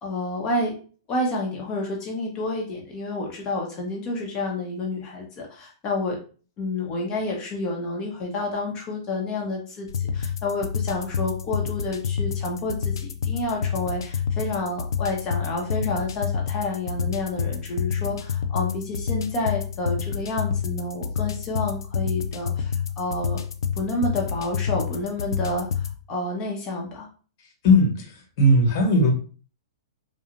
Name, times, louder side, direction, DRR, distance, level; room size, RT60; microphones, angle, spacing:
voice 1, 0.0-0.7 1.1-6.2 6.6-23.4 23.8-27.1, left 2 dB, 30° left, 1.1 m, -29 dB
sound 1, 9.9-25.9, left 7 dB, 80° left, 0.4 m, -28 dB
voice 2, 27.6-29.1, left 1 dB, 50° left, 1.3 m, -18 dB
4.9 x 2.4 x 2.6 m
hypercardioid pair, 130°, 2 cm